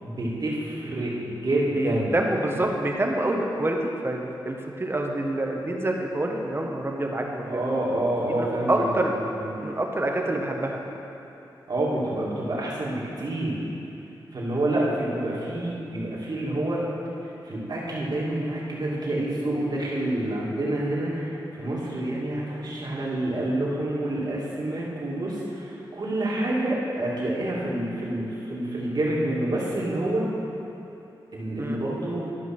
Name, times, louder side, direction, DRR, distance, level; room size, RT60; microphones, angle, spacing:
voice 1, 0.0-2.2 7.4-9.6 11.7-13.6 14.3-16.8 17.4-30.3 31.3-32.3, right 1 dB, 55° right, -6 dB, 2.5 m, -28 dB
voice 2, 1.7-7.6 8.3-9.2 9.6-10.8 14.7-14.8 31.6-31.8, right 1 dB, 30° right, 1 dB, 1.2 m, -27 dB
12.5 x 5.4 x 6.1 m, 3.0 s
cardioid pair, 65°, 8 cm